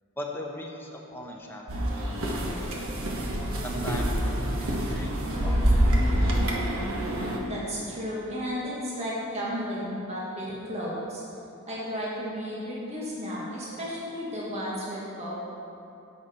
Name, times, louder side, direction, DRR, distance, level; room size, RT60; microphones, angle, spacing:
voice 1, 0.2-2.9 3.6-5.6, left 1 dB, 10° left, -1 dB, 1.0 m, -39 dB
sound 1, 1.7-7.4, equal, 70° right, 1.3 m, -26 dB
voice 2, 7.5-11.2 11.7-15.4, equal, 30° right, -7 dB, 1.7 m, -33 dB
10.5 x 7.8 x 4.3 m, 2.7 s
head